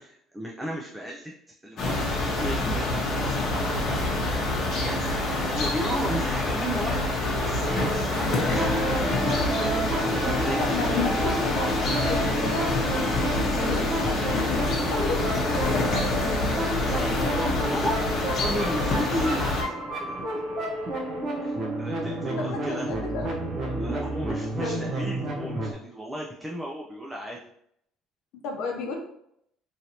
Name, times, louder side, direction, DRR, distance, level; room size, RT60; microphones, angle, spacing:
voice 1, 0.0-1.3 1.6-4.5 4.8-7.1 7.4-11.1 14.0-14.1 16.7-18.0 18.4-19.7 20.0-20.3 21.4-22.9 23.6-27.4, equal, 10° right, -2 dB, 0.4 m, -35 dB
sound 1, 1.8-19.6, left 2 dB, 50° left, 0.9 m, -27 dB
Wind instrument woodwind instrument, 7.1-10.7 10.9-14.8, right 2 dB, 75° right, 0.9 m, -36 dB
sound 2, 8.3-25.7, right 1 dB, 45° right, 0.7 m, -30 dB
voice 2, 10.6-11.7 12.1-14.6 14.9-16.1 22.4-23.3 24.6-24.8 28.4-29.0, left 4 dB, 75° left, 2 dB, 0.7 m, -33 dB
3.1 x 2.7 x 2.8 m, 0.74 s
cardioid pair, 120°, 0 cm